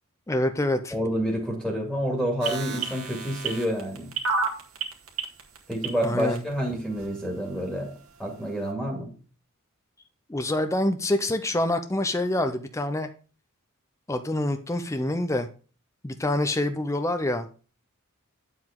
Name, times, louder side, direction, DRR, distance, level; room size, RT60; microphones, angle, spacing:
voice 1, 0.3-1.0 6.0-6.4 10.3-13.1 14.1-15.5 16.0-17.5, left 1 dB, 15° left, 8 dB, 0.6 m, -26 dB
voice 2, 0.9-4.1 5.7-7.9 8.2-9.1, equal, 5° right, 0 dB, 2.3 m, -28 dB
sound 1, 2.4-6.4 7.0-7.1, right 4 dB, 70° right, 2.2 m, -29 dB
9.6 x 7.7 x 3.6 m, 0.38 s
head